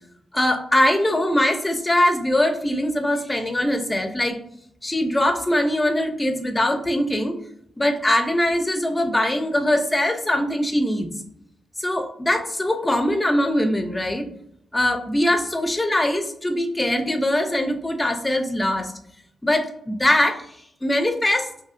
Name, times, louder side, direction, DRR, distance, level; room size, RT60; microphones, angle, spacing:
voice 1, 0.3-4.4 4.8-7.4 7.8-11.1 11.8-14.3 14.7-18.9 19.4-20.5 20.8-21.5, left 1 dB, 10° left, 6 dB, 0.5 m, -22 dB
5.5 x 2.6 x 2.5 m, 0.73 s
wide cardioid pair, 160°, 0 cm